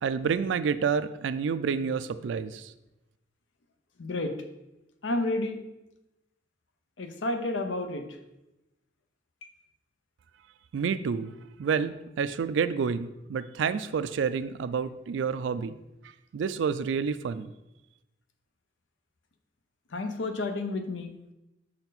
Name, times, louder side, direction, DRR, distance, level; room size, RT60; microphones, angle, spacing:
voice 1, 0.0-2.7 10.7-15.8 16.3-17.5, right 6 dB, 75° right, 13 dB, 0.3 m, -29 dB
voice 2, 4.0-4.3 5.0-5.6 7.0-8.1 19.9-21.1, left 2 dB, 85° left, 7 dB, 0.7 m, -30 dB
6.3 x 4.4 x 4.0 m, 0.94 s
head